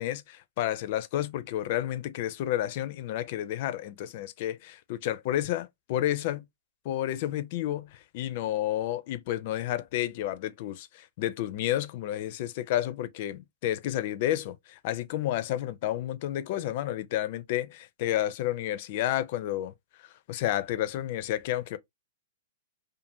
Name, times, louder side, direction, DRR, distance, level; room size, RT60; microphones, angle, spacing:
voice 1, 0.0-6.5 6.8-19.7 20.3-21.8, left 13 dB, 50° left, 0.4 m, -31 dB
2.5 x 2.5 x 2.6 m
figure-of-eight pair, 105°, 0 cm